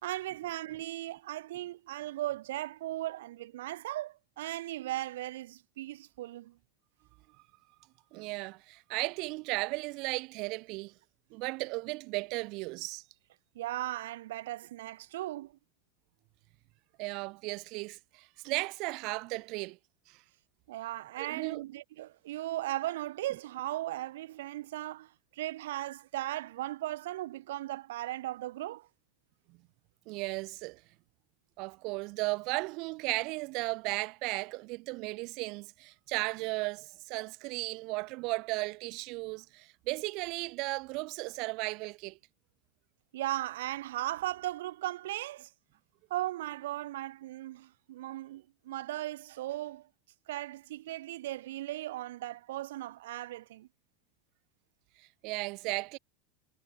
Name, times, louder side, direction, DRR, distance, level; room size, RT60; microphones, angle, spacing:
voice 1, 0.0-6.6 13.5-15.6 20.7-28.9 43.1-45.5 46.1-49.9 50.3-53.7, right 15 dB, 75° right, 4.3 m, -37 dB
voice 2, 8.1-10.9 11.3-13.0 17.0-19.8 20.1-20.2 21.2-21.6 29.5-29.6 30.1-30.8 31.6-42.2 55.0-56.0, right 25 dB, 40° right, 1.3 m, -35 dB
supercardioid pair, 170°, 0 cm